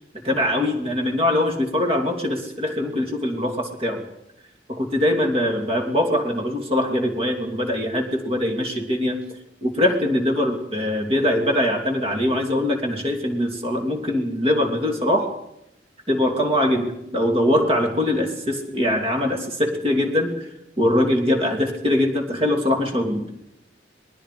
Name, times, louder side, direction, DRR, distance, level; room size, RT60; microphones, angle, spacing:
voice 1, 0.2-4.0 4.7-9.3 9.6-15.3 16.1-20.5 20.8-23.2, left 1 dB, 30° right, 4 dB, 2.9 m, -22 dB
26.0 x 20.0 x 5.1 m, 0.81 s
head